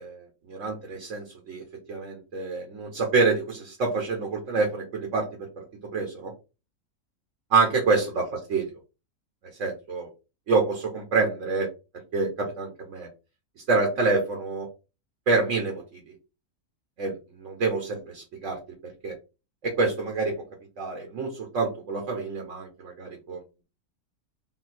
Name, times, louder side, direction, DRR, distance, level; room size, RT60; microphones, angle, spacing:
voice 1, 0.0-1.6 1.9-5.6 5.9-6.3 7.5-8.6 9.6-10.1 10.5-11.7 12.1-13.1 13.7-14.7 15.3-16.1 17.0-18.6 19.0-19.2 19.6-20.3 20.8-23.4, right 4 dB, 60° right, 1 dB, 1.4 m, -27 dB
3.9 x 2.7 x 4.2 m, 0.30 s
omnidirectional pair, 1.6 m